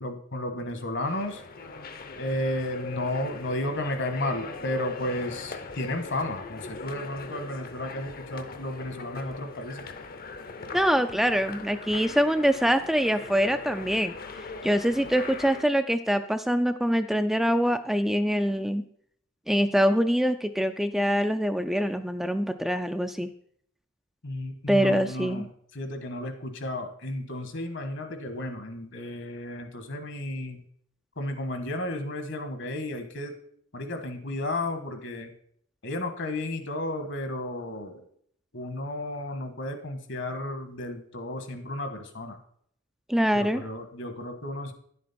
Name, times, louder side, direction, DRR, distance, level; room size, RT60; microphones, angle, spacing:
voice 1, 0.0-1.4 2.2-9.9 24.2-30.6 31.2-33.4 33.7-35.3 35.8-38.0 38.5-42.4 43.3-44.7, left 1 dB, 65° left, 8 dB, 1.3 m, -33 dB
sound 1, 1.0-15.7, left 3 dB, 45° left, 0.7 m, -40 dB
voice 2, 10.7-14.1 14.6-18.8 19.5-23.3 24.7-25.4 43.1-43.6, equal, ahead, 8 dB, 0.3 m, -24 dB
10.5 x 7.4 x 4.2 m, 0.64 s
head